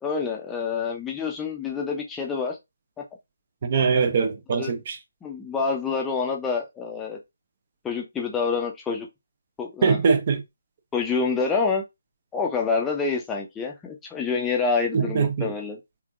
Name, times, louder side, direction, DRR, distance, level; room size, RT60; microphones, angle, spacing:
voice 1, 0.0-2.6 4.5-4.7 5.2-7.2 7.8-9.1 9.6-10.0 10.9-11.8 12.3-15.8, left 5 dB, 10° left, 0.6 m, -27 dB
voice 2, 3.6-5.0 9.8-10.4 14.9-15.5, right 5 dB, 40° right, 0.7 m, -22 dB
3.4 x 2.8 x 2.4 m
figure-of-eight pair, 145°, 0 cm